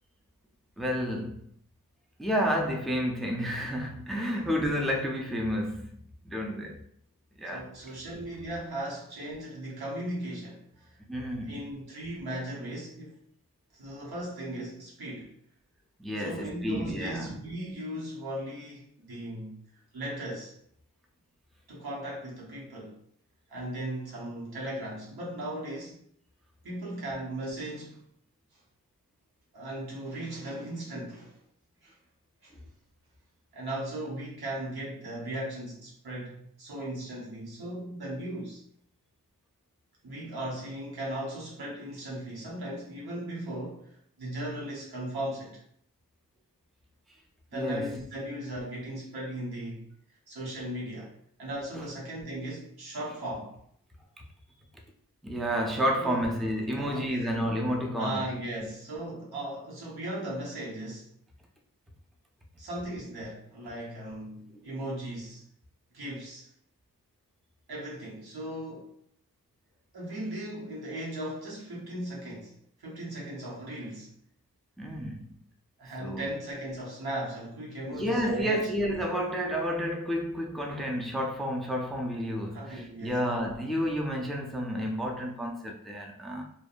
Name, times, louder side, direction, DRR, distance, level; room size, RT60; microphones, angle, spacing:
voice 1, 0.8-1.5 2.2-5.9 6.2-6.8 7.4-7.7 11.1-11.6 16.0-17.3 47.5-47.9 51.7-51.8 55.2-58.2 64.6-64.7 74.8-75.3 76.0-76.3 77.9-86.4, equal, ahead, 0.4 m, -30 dB
voice 2, 7.5-11.0 11.4-13.2 13.7-15.4 16.2-19.6 19.9-20.5 21.7-23.0 23.5-26.0 26.6-28.0 29.5-31.4 31.8-31.9 32.4-32.5 33.5-38.6 40.0-45.6 47.5-49.9 50.3-53.6 56.0-56.3 56.8-57.6 58.0-61.1 62.6-65.4 65.9-66.5 67.7-69.0 69.9-74.1 75.8-78.8 82.5-83.2, right 1 dB, 85° right, 1.0 m, -37 dB
2.6 x 2.1 x 2.4 m
cardioid pair, 50°, 37 cm